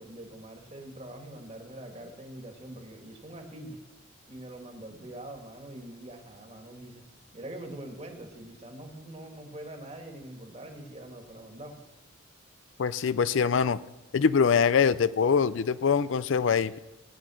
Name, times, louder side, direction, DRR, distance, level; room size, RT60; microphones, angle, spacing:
voice 1, 0.0-3.8 4.3-7.0 7.3-11.8, right 1 dB, 30° right, 3 dB, 2.1 m, -44 dB
voice 2, 12.8-13.8 14.1-16.8, left 6 dB, 70° left, 16 dB, 0.4 m, -24 dB
17.5 x 9.7 x 6.3 m, 1.0 s
head